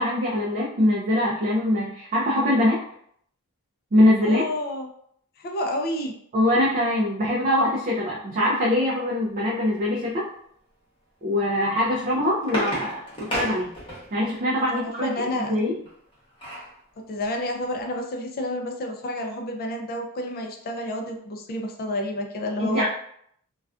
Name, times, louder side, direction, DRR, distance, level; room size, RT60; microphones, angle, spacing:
voice 1, 0.0-2.8 3.9-4.5 6.3-10.3 11.2-13.7 14.1-15.1 15.5-15.8 22.6-22.8, left 1 dB, 35° right, -4 dB, 0.4 m, -23 dB
voice 2, 4.2-4.9 5.4-6.1 14.7-15.6 17.0-22.8, left 1 dB, 45° left, 3 dB, 0.4 m, -30 dB
sound 1, 11.8-14.3 15.9-16.7 17.2-17.3 17.6-17.8, equal, 25° left, 0.8 m, -32 dB
2.3 x 2.3 x 2.3 m, 0.67 s
head